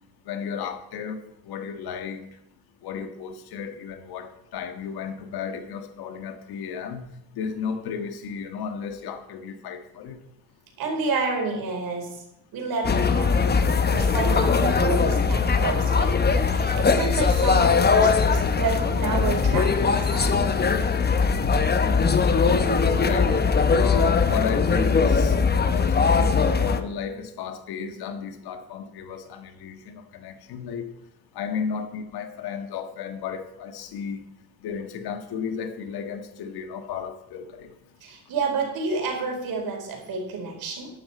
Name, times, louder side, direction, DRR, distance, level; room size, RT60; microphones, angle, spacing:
voice 1, 0.3-2.3 2.8-7.0 7.4-10.2 23.0-23.4 23.7-25.4 25.7-30.9 31.3-34.2 34.6-37.7, left 7 dB, 70° left, 1.7 m, -33 dB
voice 2, 10.8-12.2 12.5-13.5 13.9-20.5 38.0-40.9, right 4 dB, 65° right, 4.5 m, -30 dB
sound 1, 12.8-26.8, left 5 dB, 25° left, 1.0 m, -21 dB
12.5 x 11.0 x 4.4 m
cardioid pair, 100°, 39 cm